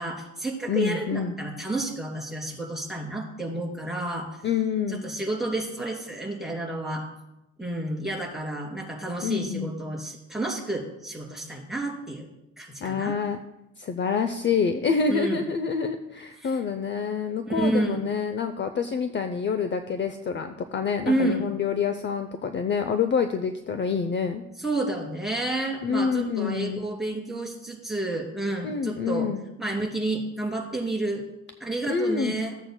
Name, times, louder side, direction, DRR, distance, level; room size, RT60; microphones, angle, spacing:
voice 1, 0.0-4.3 4.9-7.1 7.6-12.3 12.6-13.1 15.1-15.4 16.4-16.6 17.5-18.0 21.1-21.5 24.6-29.3 29.6-31.2 31.6-32.5, right 2 dB, ahead, -2 dB, 2.8 m, -30 dB
voice 2, 0.7-1.3 4.4-5.0 9.2-9.7 12.8-13.4 13.8-24.4 25.8-26.8 28.6-29.4 31.9-32.3, left 6 dB, 40° left, 9 dB, 0.6 m, -27 dB
14.5 x 7.7 x 2.2 m, 0.90 s
cardioid pair, 90°, 30 cm